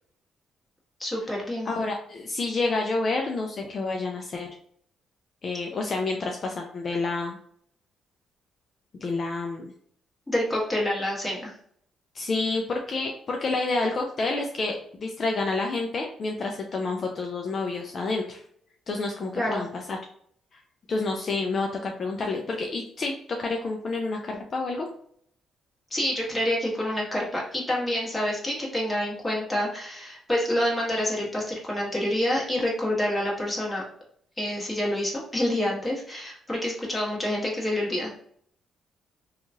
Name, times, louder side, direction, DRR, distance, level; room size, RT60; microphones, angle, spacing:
voice 1, 1.0-1.7 10.3-11.5 19.3-19.7 25.9-33.8 34.4-38.2, left 1 dB, 15° left, -4 dB, 1.3 m, -27 dB
voice 2, 1.7-4.5 5.4-7.4 9.0-9.7 12.1-18.4 18.9-20.0 20.5-20.6 20.9-24.9, left 3 dB, 45° left, 2 dB, 0.4 m, -29 dB
2.9 x 2.3 x 2.6 m, 0.63 s
cardioid pair, 90°, 0 cm